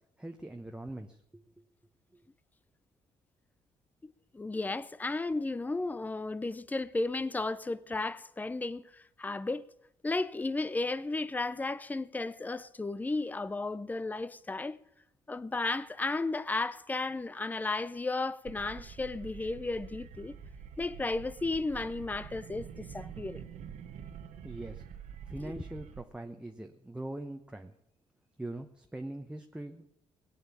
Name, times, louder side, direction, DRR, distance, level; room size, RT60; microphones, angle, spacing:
voice 1, 0.2-1.4 2.1-2.2 24.4-24.8 25.3-27.7 28.4-29.8, right 1 dB, 10° right, 1.0 m, -42 dB
voice 2, 4.0-9.7 10.0-14.8 15.3-20.4 20.8-23.4 25.4-25.5, left 3 dB, 15° left, 0.6 m, -34 dB
sound 1, 18.4-26.0, right 7 dB, 80° right, 1.2 m, -46 dB
19.0 x 8.9 x 7.3 m
cardioid pair, 85°, 12 cm